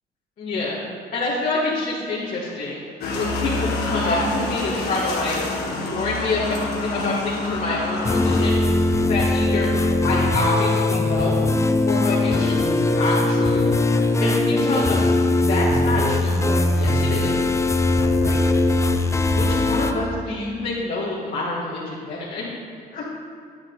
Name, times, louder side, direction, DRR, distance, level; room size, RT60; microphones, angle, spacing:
voice 1, 0.4-0.8 1.1-2.8 3.2-5.3 5.7-8.6 9.1-11.5 11.9-13.7 14.2-17.4 17.9-18.4 19.3-22.4 22.9-23.0, left 2 dB, 50° left, -6 dB, 2.0 m, -27 dB
sound 1, 3.0-8.5, left 2 dB, 75° left, 1.7 m, -27 dB
sound 2, 8.0-19.9, left 2 dB, 15° left, 0.6 m, -20 dB
9.6 x 9.0 x 4.0 m, 2.3 s
cardioid pair, 110°, 17 cm